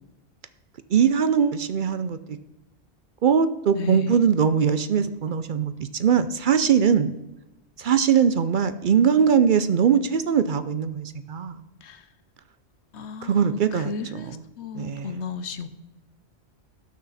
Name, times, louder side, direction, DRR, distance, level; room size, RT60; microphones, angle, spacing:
voice 1, 0.9-2.4 3.2-7.1 7.8-11.6 13.2-13.9 14.8-15.1, right 7 dB, 55° right, 12 dB, 0.6 m, -21 dB
voice 2, 3.7-4.2 11.8-12.1 12.9-15.7, left 5 dB, 85° left, 12 dB, 1.1 m, -34 dB
18.0 x 6.3 x 4.1 m, 0.98 s
omnidirectional pair, 1.1 m